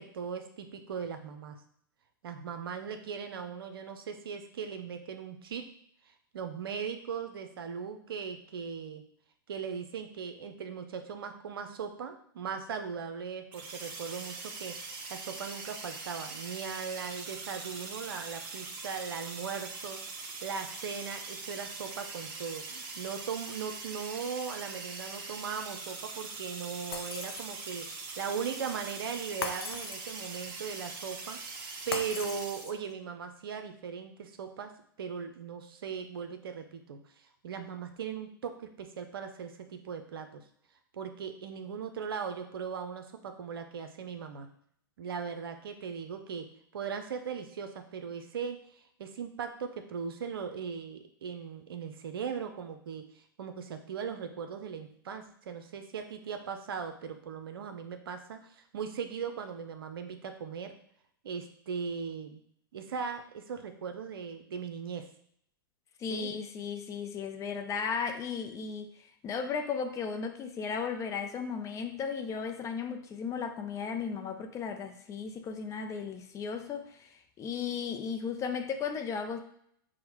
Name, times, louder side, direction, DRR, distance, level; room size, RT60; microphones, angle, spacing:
voice 1, 0.0-1.6 2.2-5.6 6.3-9.0 9.5-34.7 35.0-40.4 40.9-44.5 45.0-46.5 46.7-48.6 49.0-60.7 61.2-62.4 62.7-65.1 66.1-66.3, right 6 dB, 75° right, 0.6 m, -39 dB
sound 1, 13.5-32.7, right 4 dB, 40° right, 0.8 m, -42 dB
Shatter, 26.9-27.9 29.4-30.4 31.9-32.9, left 4 dB, 90° left, 0.6 m, -39 dB
voice 2, 66.0-68.9 69.2-77.1 77.4-79.4, left 6 dB, 25° left, 0.5 m, -35 dB
6.2 x 2.1 x 3.0 m
hypercardioid pair, 105°, 12 cm